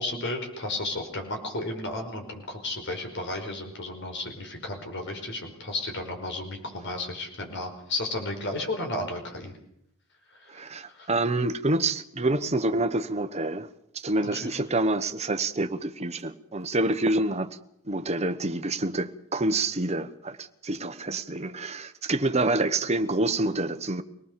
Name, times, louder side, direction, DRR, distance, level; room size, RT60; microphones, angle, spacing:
voice 1, 0.0-9.5 10.3-11.1 14.2-14.5, left 2 dB, 55° left, 5.1 m, -33 dB
voice 2, 10.5-13.7 13.9-17.5 17.8-24.0, right 2 dB, 30° right, 1.2 m, -27 dB
25.0 x 19.0 x 6.9 m
head